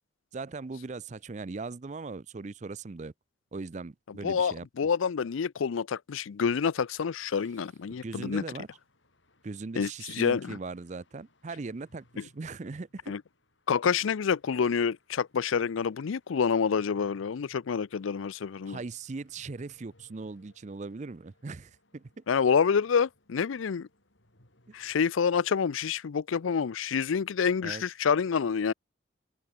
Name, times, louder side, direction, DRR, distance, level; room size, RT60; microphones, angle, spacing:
voice 1, 0.3-3.1 3.5-4.7 7.9-8.7 9.4-13.1 18.7-22.2 27.6-27.8, right 3 dB, 35° right, 0.5 m, -39 dB
voice 2, 4.2-8.4 9.8-10.6 13.1-13.2 13.7-18.8 22.3-23.9 24.7-28.7, left 6 dB, 85° left, 0.5 m, -27 dB
sound 1, 7.2-25.3, left 1 dB, 70° left, 6.3 m, -67 dB
open air
head